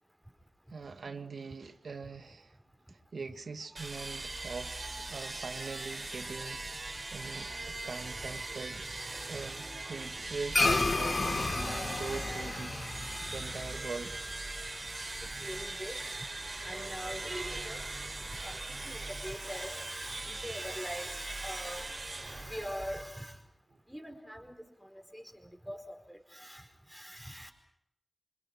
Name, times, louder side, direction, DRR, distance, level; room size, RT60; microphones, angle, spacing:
voice 1, 0.7-2.6 2.9-14.2, right 4 dB, 90° right, 1.7 m, -42 dB
sound 1, 3.8-23.2, right 2 dB, 40° right, 3.5 m, -40 dB
sound 2, 10.5-15.2, left 3 dB, 50° left, 1.4 m, -32 dB
voice 2, 15.2-16.1 16.6-17.8 18.4-21.9 22.2-23.4 23.9-27.5, equal, ahead, 4.8 m, -43 dB
26.5 x 26.0 x 6.2 m
wide cardioid pair, 95°, 0 cm